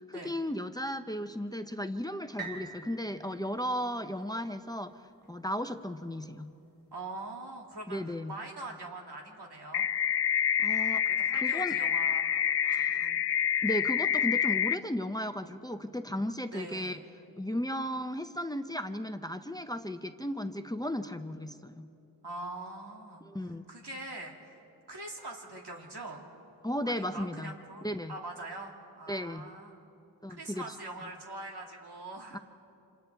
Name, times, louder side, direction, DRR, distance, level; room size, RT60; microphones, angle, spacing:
voice 1, 0.0-4.9 5.3-6.5 7.9-8.3 10.6-11.1 11.3-11.8 12.6-13.1 13.6-17.0 17.4-21.9 23.2-23.6 26.6-27.5 27.8-28.1 29.1-29.5 30.2-30.6 32.3-32.4, equal, 10° left, 9 dB, 0.6 m, -35 dB
sound 1, 2.4-6.3 6.9-7.0, right 4 dB, 25° right, 2.6 m, -47 dB
voice 2, 6.9-8.0 8.3-9.9 11.0-12.2 12.8-13.2 16.5-17.0 22.2-24.5 24.9-26.3 26.8-29.7 30.4-32.4, right 2 dB, 85° right, 0 dB, 2.5 m, -43 dB
sound 2, 9.7-14.7, left 9 dB, 85° left, 0.5 m, -27 dB
27.5 x 27.0 x 3.5 m, 2.7 s
wide cardioid pair, 90°, 39 cm